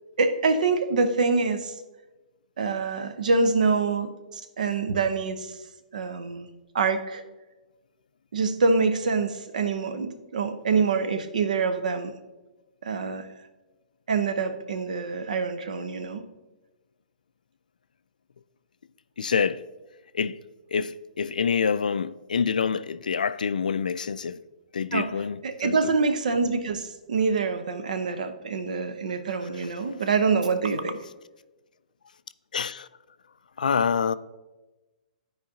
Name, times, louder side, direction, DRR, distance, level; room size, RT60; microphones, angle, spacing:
voice 1, 0.2-1.7 2.6-5.6 5.9-6.5 6.7-7.2 8.3-12.1 12.8-13.3 14.1-16.3 24.9-25.1 25.4-31.0, right 4 dB, 65° right, 0.8 m, -25 dB
voice 2, 19.2-19.6 20.1-20.4 20.7-24.4 24.7-25.9 32.5-32.9 33.6-34.1, left 6 dB, 70° left, 0.3 m, -26 dB
12.5 x 4.8 x 2.7 m
figure-of-eight pair, 115°, 5 cm